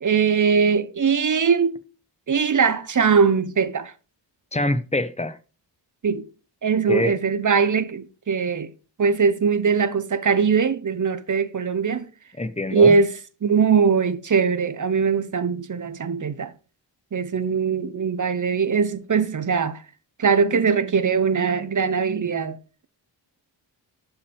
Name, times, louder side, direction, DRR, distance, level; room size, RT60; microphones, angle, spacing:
voice 1, 0.0-1.8 2.3-3.9 6.0-6.3 6.6-8.7 9.0-12.1 12.7-13.1 13.4-16.5 17.1-19.8 20.2-22.6, right 5 dB, 45° right, 0.9 m, -21 dB
voice 2, 4.5-5.4 6.9-7.1 12.4-13.0, left 1 dB, 15° left, 0.9 m, -24 dB
11.5 x 5.8 x 3.4 m
cardioid pair, 65°, 43 cm